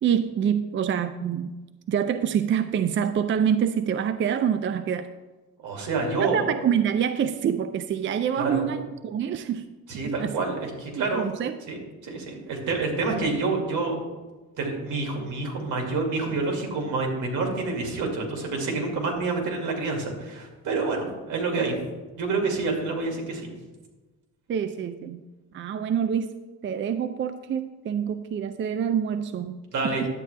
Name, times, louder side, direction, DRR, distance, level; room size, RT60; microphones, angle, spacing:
voice 1, 0.0-1.5 1.9-5.1 6.2-9.6 10.2-10.3 10.9-11.5 24.5-25.2 25.5-26.3 26.6-29.6 30.0-30.1, right 8 dB, 40° right, 10 dB, 0.5 m, -26 dB
voice 2, 5.6-6.5 8.4-8.6 9.9-11.2 11.7-11.8 12.0-14.0 14.6-21.8 22.2-23.5 29.7-30.0, right 3 dB, 80° right, 1 dB, 2.4 m, -28 dB
10.5 x 8.5 x 3.3 m, 1.2 s
cardioid pair, 110°, 31 cm